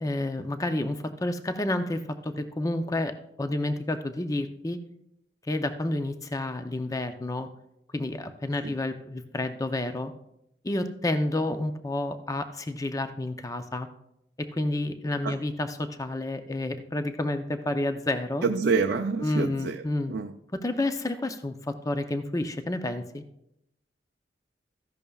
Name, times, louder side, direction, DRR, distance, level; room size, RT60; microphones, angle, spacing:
voice 1, 0.0-4.8 5.4-7.5 7.9-10.1 10.6-13.9 14.4-18.5 19.2-20.1 20.5-23.2, left 1 dB, 20° left, 8 dB, 0.5 m, -30 dB
voice 2, 18.4-19.8 20.1-20.3, right 4 dB, 65° right, 4 dB, 0.5 m, -27 dB
14.0 x 10.5 x 2.3 m, 0.80 s
head